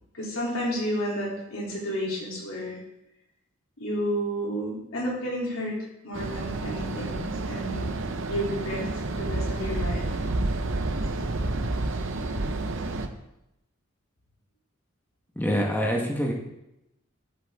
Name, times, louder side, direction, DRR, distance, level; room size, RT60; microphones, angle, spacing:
voice 1, 0.1-2.8 3.8-7.9 8.3-10.2, equal, 85° left, -3 dB, 3.1 m, -31 dB
sound 1, 6.1-13.1, right 2 dB, 65° right, 0.8 m, -29 dB
voice 2, 15.3-16.3, equal, 10° left, 0 dB, 1.2 m, -25 dB
11.0 x 8.5 x 3.6 m, 0.88 s
head